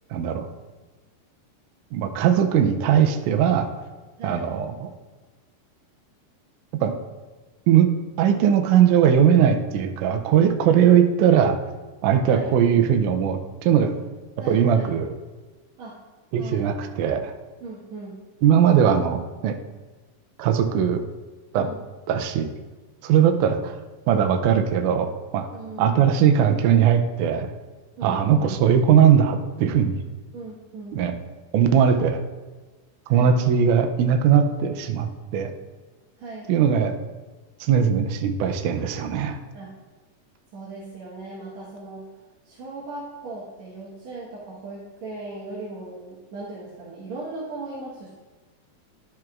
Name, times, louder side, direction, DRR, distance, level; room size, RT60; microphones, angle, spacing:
voice 1, 0.1-0.5 1.9-3.7 4.2-4.9 6.8-7.0 7.7-7.9 8.2-11.6 12.0-13.9 14.5-15.1 16.3-17.3 18.4-19.6 20.4-21.0 21.5-21.7 22.1-22.5 23.0-23.8 24.1-25.5 25.8-27.5 28.0-30.0 30.9-31.2 31.5-32.2 33.1-35.5 36.5-37.0 37.6-39.4, right 8 dB, 80° right, 5 dB, 1.8 m, -19 dB
voice 2, 4.2-4.5 12.2-12.5 14.4-14.9 15.8-16.0 16.4-16.7 17.6-18.1 21.6-21.8 25.5-26.0 28.0-28.5 30.3-31.0 33.1-33.4 36.2-36.5 39.5-39.7 40.5-42.1 42.4-48.1, right 3 dB, 60° right, -8 dB, 2.3 m, -38 dB
11.5 x 7.6 x 2.5 m, 1.3 s
omnidirectional pair, 4.1 m